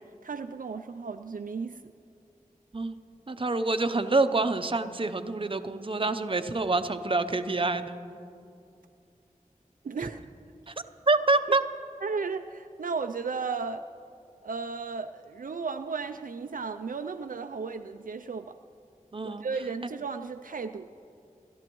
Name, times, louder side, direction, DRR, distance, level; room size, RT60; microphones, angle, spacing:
voice 1, 0.0-1.9 9.8-10.2 12.0-13.9 14.4-18.6 19.2-20.9, right 5 dB, 75° right, 7 dB, 0.4 m, -35 dB
voice 2, 3.3-8.0 10.7-10.8 11.1-11.6 19.1-19.5, right 3 dB, 40° right, 9 dB, 0.7 m, -26 dB
28.5 x 13.0 x 3.1 m, 2.5 s
wide cardioid pair, 55°, 14 cm